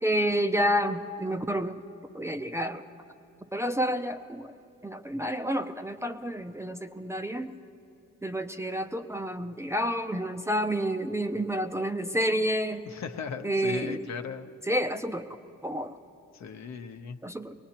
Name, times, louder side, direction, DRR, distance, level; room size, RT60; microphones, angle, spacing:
voice 1, 0.0-1.8 2.1-2.8 3.5-4.5 4.8-7.5 8.2-12.8 13.4-14.0 14.7-15.3 15.6-16.0 17.2-17.5, equal, 10° right, 7 dB, 0.5 m, -29 dB
voice 2, 12.8-14.5 16.3-17.2, left 6 dB, 65° left, 6 dB, 0.9 m, -37 dB
21.5 x 19.0 x 2.9 m, 2.9 s
cardioid pair, 90°, 30 cm